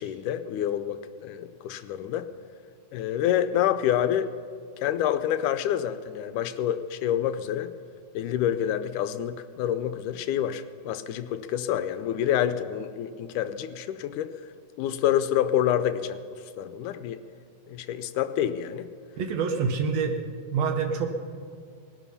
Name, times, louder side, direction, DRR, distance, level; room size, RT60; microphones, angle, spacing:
voice 1, 0.0-2.3 2.9-4.3 4.8-7.7 8.1-14.3 14.8-16.2 16.6-17.2 17.7-18.9, left 10 dB, 90° left, 11 dB, 2.2 m, -27 dB
voice 2, 19.2-20.2 20.5-21.1, right 5 dB, 65° right, 4 dB, 2.1 m, -26 dB
20.0 x 12.0 x 5.6 m, 2.2 s
omnidirectional pair, 3.6 m